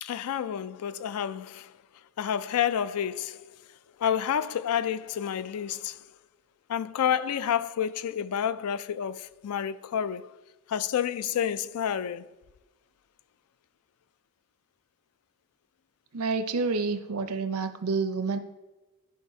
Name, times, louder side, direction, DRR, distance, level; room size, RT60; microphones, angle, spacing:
voice 1, 0.0-1.8 2.2-3.6 4.0-6.0 6.7-10.3 10.7-12.3, left 9 dB, 85° left, 0.4 m, -29 dB
voice 2, 16.1-18.4, right 4 dB, 80° right, 0.6 m, -28 dB
13.0 x 4.6 x 2.7 m
head